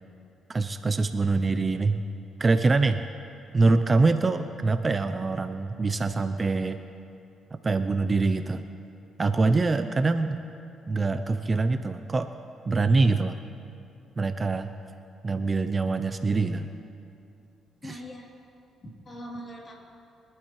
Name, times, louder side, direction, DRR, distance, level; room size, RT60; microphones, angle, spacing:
voice 1, 0.5-2.0 2.4-3.0 3.5-6.8 7.5-8.6 9.2-10.4 10.9-12.3 12.7-13.4 14.2-14.7 15.2-16.7 17.8-18.0, right 3 dB, 30° right, 9 dB, 0.6 m, -24 dB
voice 2, 17.8-18.3 18.8-19.8, equal, 40° left, -2 dB, 3.4 m, -41 dB
24.5 x 12.5 x 3.2 m, 2.6 s
cardioid pair, 90°, 0 cm